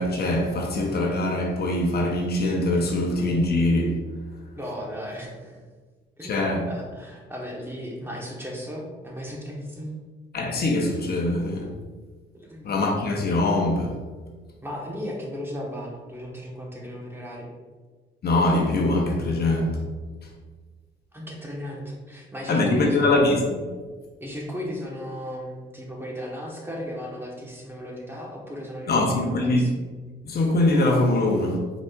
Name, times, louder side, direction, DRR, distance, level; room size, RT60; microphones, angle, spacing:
voice 1, 0.0-4.0 6.2-6.7 10.3-11.7 12.6-14.0 18.2-19.8 22.5-23.8 28.9-29.7 30.2-31.6, left 2 dB, 55° left, 0.8 m, -23 dB
voice 2, 4.6-5.6 6.2-9.9 12.3-12.7 14.6-17.5 21.1-23.1 24.2-29.7, equal, 10° right, 1.1 m, -35 dB
4.9 x 4.1 x 2.3 m
cardioid pair, 90°, 20 cm